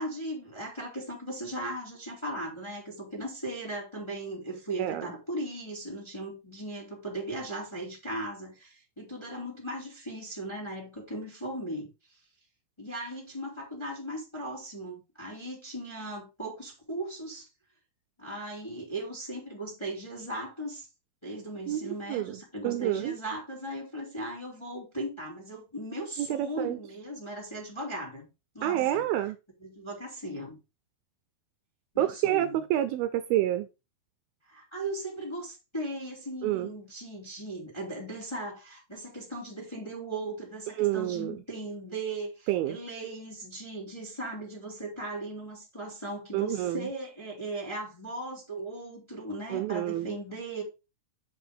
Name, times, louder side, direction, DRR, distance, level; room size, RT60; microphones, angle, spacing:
voice 1, 0.0-11.9 12.8-17.5 18.2-20.9 21.2-28.3 28.5-29.0 29.6-30.6 31.9-32.6 34.5-50.6, right 1 dB, 10° left, 2.1 m, -38 dB
voice 2, 21.7-22.4 22.6-23.2 26.2-26.8 28.6-29.4 32.0-33.7 36.4-36.7 40.8-41.4 42.5-42.8 46.3-46.9 49.5-50.1, right 13 dB, 80° right, 2.3 m, -28 dB
7.9 x 4.5 x 5.1 m
omnidirectional pair, 4.6 m